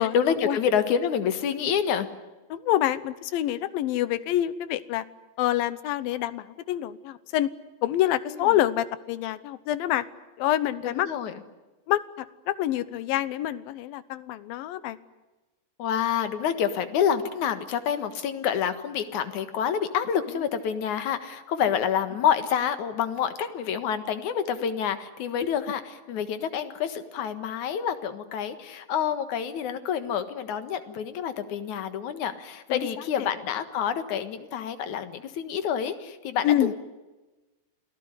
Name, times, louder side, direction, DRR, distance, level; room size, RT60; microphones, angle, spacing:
voice 1, 0.0-2.1 8.3-8.6 10.8-11.3 15.8-36.7, left 8 dB, 60° left, 11 dB, 2.6 m, -28 dB
voice 2, 2.5-5.0 5.4-7.5 7.8-10.0 10.4-11.1 11.9-15.0 32.7-32.9 33.2-33.3 36.4-36.7, left 13 dB, 75° left, 16 dB, 2.6 m, -26 dB
28.0 x 18.0 x 9.8 m, 1.1 s
omnidirectional pair, 4.4 m